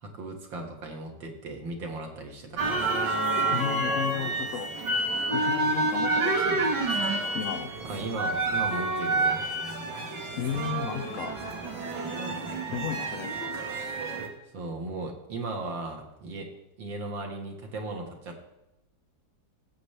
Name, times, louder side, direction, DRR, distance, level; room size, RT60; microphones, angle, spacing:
voice 1, 0.0-2.9 3.4-3.6 7.8-9.4 14.5-16.5 16.8-18.4, right 2 dB, 80° right, 2 dB, 2.3 m, -37 dB
sound 1, 2.6-14.3, right 2 dB, 65° right, 1.9 m, -28 dB
voice 2, 3.5-4.7 5.3-6.7 7.3-7.7 10.4-11.4 12.7-13.4, left 8 dB, 85° left, 7 dB, 0.6 m, -34 dB
17.0 x 7.4 x 3.3 m, 0.90 s
omnidirectional pair, 2.0 m